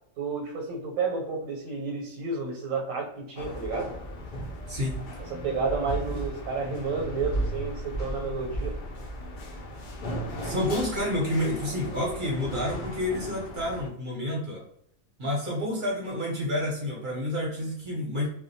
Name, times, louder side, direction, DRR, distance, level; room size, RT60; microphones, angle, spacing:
voice 1, 0.2-4.0 5.2-8.8, right 4 dB, 85° right, 1 dB, 1.0 m, -31 dB
sound 1, 3.4-13.9, right 1 dB, 75° left, 0.4 m, -35 dB
voice 2, 4.7-5.0 10.4-14.6 15.2-18.3, left 1 dB, 45° right, -3 dB, 0.7 m, -29 dB
2.2 x 2.1 x 2.6 m, 0.71 s
omnidirectional pair, 1.4 m